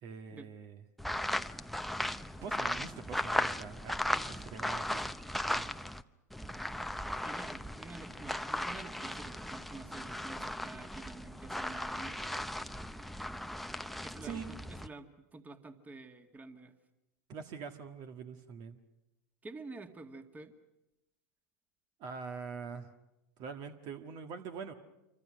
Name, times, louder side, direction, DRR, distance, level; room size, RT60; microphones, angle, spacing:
voice 1, 0.0-0.8 2.4-5.1 5.4-5.7 14.2-14.5 17.3-18.8 22.0-22.9 23.4-24.7, right 6 dB, 50° right, 6 dB, 1.7 m, -44 dB
sound 1, 1.0-6.0 6.3-14.9, left 1 dB, ahead, 0.8 m, -37 dB
voice 2, 7.2-12.2 14.0-16.7 19.4-20.5, right 3 dB, 20° right, 7 dB, 2.2 m, -49 dB
27.5 x 24.5 x 6.4 m, 0.95 s
hypercardioid pair, 95°, 9 cm